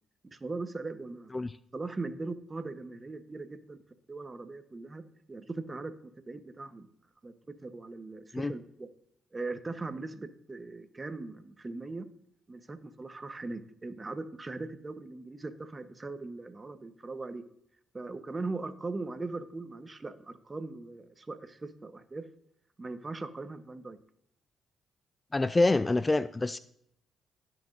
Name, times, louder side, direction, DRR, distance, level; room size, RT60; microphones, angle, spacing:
voice 1, 0.3-1.3 1.7-3.8 4.1-5.0 5.3-5.9 6.3-6.9 7.2-7.3 7.6-8.9 9.3-12.1 12.5-17.4 17.9-22.2 22.8-24.0, right 3 dB, 25° right, 9 dB, 0.9 m, -39 dB
voice 2, 25.3-26.6, left 2 dB, 25° left, 14 dB, 0.3 m, -26 dB
18.0 x 6.0 x 2.6 m, 0.73 s
cardioid pair, 70°, 0 cm